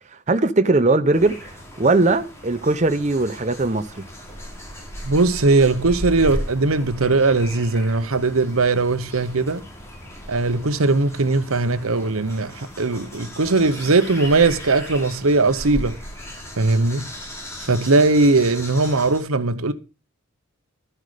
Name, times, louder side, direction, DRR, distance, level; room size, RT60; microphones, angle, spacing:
voice 1, 0.3-1.5 1.8-4.1, right 2 dB, 35° right, 0.7 m, -19 dB
sound 1, 1.1-19.2, equal, 15° left, 3.0 m, -36 dB
voice 2, 5.0-9.6 10.3-16.0 16.6-17.1 17.7-19.7, right 3 dB, 80° right, 1.0 m, -19 dB
12.5 x 7.9 x 5.1 m
head